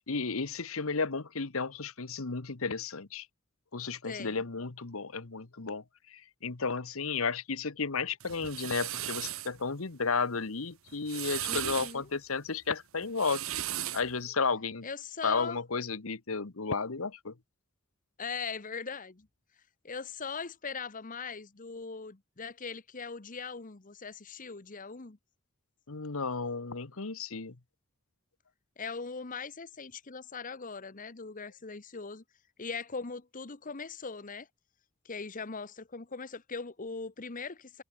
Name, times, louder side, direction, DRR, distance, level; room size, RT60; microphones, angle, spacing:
voice 1, 0.1-3.3 3.7-13.4 13.9-14.9 15.2-17.3 25.9-27.6, left 4 dB, 70° left, 1.2 m, -33 dB
voice 2, 4.0-4.4 11.5-12.1 14.8-15.6 18.2-19.3 19.8-25.2 28.8-32.2 32.6-34.5 35.0-37.8, left 5 dB, 40° left, 1.0 m, -40 dB
sound 1, 8.2-9.5 10.9-11.9 13.0-14.1, right 13 dB, 70° right, 1.0 m, -36 dB
head